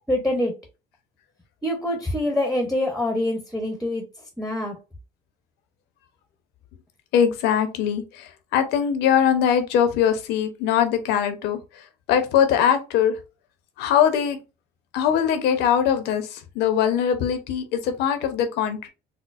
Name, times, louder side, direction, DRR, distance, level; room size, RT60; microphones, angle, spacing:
voice 1, 0.1-0.5 1.6-4.0 4.4-4.8, left 1 dB, ahead, 0.7 m, -25 dB
voice 2, 7.1-11.6 12.1-13.1 13.8-14.4 14.9-18.9, left 8 dB, 90° left, 0.7 m, -21 dB
4.2 x 2.0 x 2.4 m
cardioid pair, 110°, 17 cm